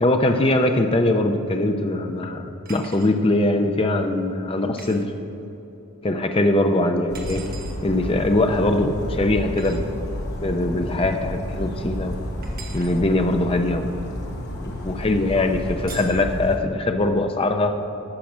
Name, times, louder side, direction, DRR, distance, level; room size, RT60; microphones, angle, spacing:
voice 1, 0.0-2.4 2.7-5.1 6.0-7.4 7.8-9.8 10.4-12.2 12.7-13.9 14.6-17.7, left 2 dB, 25° left, 5 dB, 0.6 m, -21 dB
sound 1, 2.7-3.1 4.8-5.0 7.1-7.8 9.6-9.8 12.4-13.0 15.9-16.2, right 5 dB, 40° right, 1.2 m, -41 dB
Bird vocalization bird call bird song, 7.1-16.6, equal, 50° left, 1.2 m, -31 dB
13.5 x 5.9 x 6.1 m, 2.9 s
head